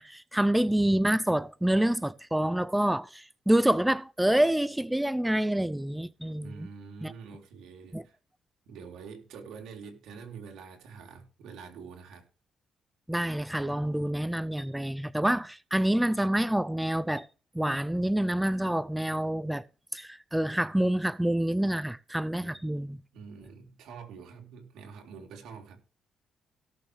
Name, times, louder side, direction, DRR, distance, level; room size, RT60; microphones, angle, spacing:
voice 1, 0.0-6.7 7.0-7.1 7.9-8.0 13.1-17.3 17.5-19.6 19.9-23.0, right 1 dB, 5° right, 0.5 m, -27 dB
voice 2, 6.4-8.2 8.7-12.3 22.4-22.8 23.1-25.8, right 5 dB, 85° right, 3.3 m, -46 dB
17.5 x 7.0 x 3.3 m
cardioid pair, 90°, 0 cm